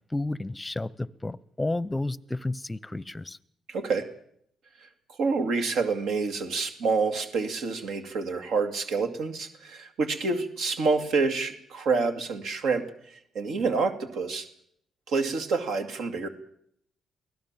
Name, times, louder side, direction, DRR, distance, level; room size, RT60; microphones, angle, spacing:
voice 1, 0.1-3.4, left 2 dB, 15° left, 21 dB, 0.7 m, -31 dB
voice 2, 3.7-4.1 5.2-14.5 15.1-16.3, right 4 dB, 75° right, 8 dB, 2.3 m, -28 dB
23.5 x 16.5 x 7.4 m, 0.69 s
cardioid pair, 90°, 0 cm